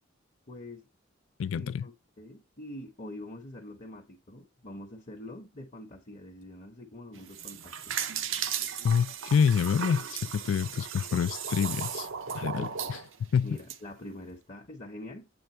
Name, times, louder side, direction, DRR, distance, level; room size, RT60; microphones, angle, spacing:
voice 1, 0.5-0.9 1.5-8.1 12.6-13.0 13.4-15.3, left 1 dB, 35° left, 0.8 m, -45 dB
voice 2, 1.4-1.9 8.8-12.1 12.3-13.0 13.3-13.6, left 7 dB, 85° left, 0.3 m, -27 dB
sound 1, 7.2-13.8, right 7 dB, 80° right, 0.7 m, -36 dB
7.8 x 3.4 x 4.3 m
head